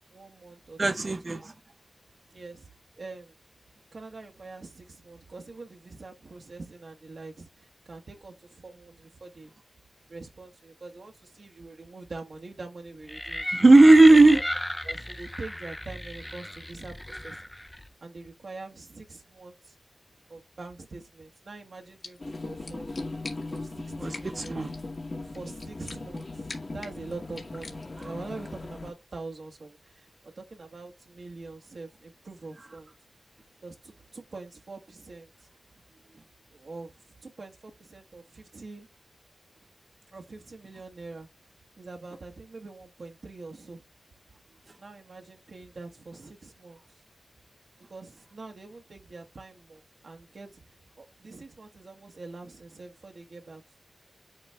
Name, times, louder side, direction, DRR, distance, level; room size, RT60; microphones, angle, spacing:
voice 1, 0.1-1.1 2.3-2.7 3.0-3.4 3.9-9.5 10.1-13.6 14.1-14.4 14.8-17.4 18.0-19.8 20.3-22.9 23.5-24.6 25.2-32.9 33.6-35.5 36.5-36.9 37.2-38.9 40.1-41.3 41.8-43.8 44.8-47.0 47.9-53.8, right 3 dB, 70° right, 1.2 m, -44 dB
voice 2, 0.8-1.5 13.5-14.4 24.0-24.7, right 2 dB, 45° right, 0.9 m, -16 dB
sound 1, 13.1-17.9, left 1 dB, 10° left, 0.5 m, -34 dB
sound 2, 21.7-28.2, left 3 dB, 65° left, 1.8 m, -48 dB
sound 3, 22.2-28.9, left 2 dB, 50° left, 1.3 m, -38 dB
8.8 x 3.1 x 3.5 m
wide cardioid pair, 70°, 0 cm